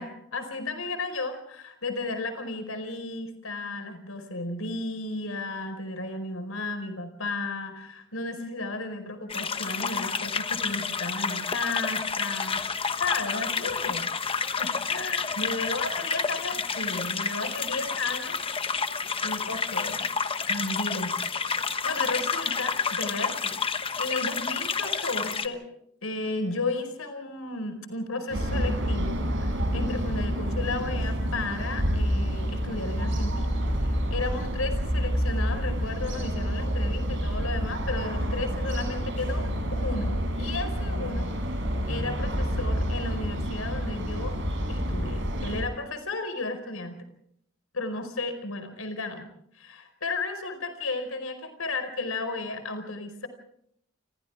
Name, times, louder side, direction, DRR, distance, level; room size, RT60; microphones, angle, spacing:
voice 1, 0.0-12.6 13.0-14.1 14.4-18.4 19.2-20.1 20.5-21.2 21.6-23.6 24.0-25.6 26.0-39.5 39.7-41.3 41.9-44.4 44.7-47.0 47.7-49.3 49.5-53.3, left 3 dB, 80° left, 8 dB, 4.8 m, -34 dB
sound 1, 9.3-25.5, left 5 dB, 25° left, 1.0 m, -30 dB
sound 2, 28.3-45.6, equal, 60° right, 6.9 m, -28 dB
30.0 x 26.0 x 3.6 m, 0.70 s
head